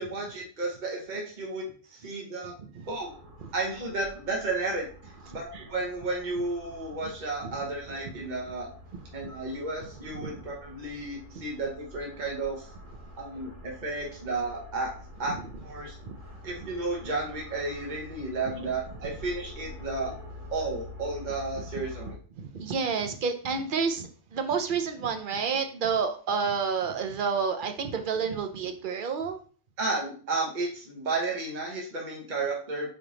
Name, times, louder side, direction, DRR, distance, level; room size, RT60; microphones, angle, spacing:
voice 1, 0.0-2.5 2.9-3.2 3.5-8.7 9.1-12.7 13.2-16.0 16.4-20.1 20.5-22.2 29.8-32.9, right 3 dB, 40° right, -1 dB, 1.1 m, -33 dB
sound 1, 2.8-22.1, left 1 dB, 85° right, 1.9 m, -47 dB
voice 2, 22.4-29.4, right 5 dB, 60° right, 6 dB, 0.5 m, -29 dB
4.3 x 3.3 x 3.8 m, 0.41 s
omnidirectional pair, 1.3 m